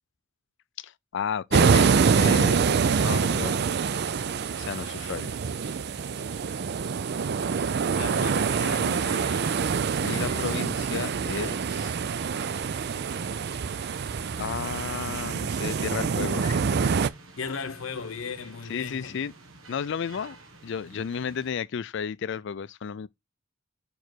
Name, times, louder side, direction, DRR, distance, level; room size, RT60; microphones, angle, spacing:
voice 1, 0.8-2.6 3.0-3.5 4.6-5.4 10.0-11.9 12.7-12.9 14.4-16.6 18.7-19.3 19.7-20.4 20.6-23.1, left 6 dB, 60° left, 0.4 m, -33 dB
sound 1, 1.5-17.1, right 5 dB, 55° right, 0.4 m, -25 dB
sound 2, 2.5-21.5, right 2 dB, 85° right, 1.5 m, -49 dB
voice 2, 7.9-9.5 10.0-10.5 17.4-19.2, left 5 dB, 85° left, 0.8 m, -37 dB
5.5 x 4.8 x 4.5 m
head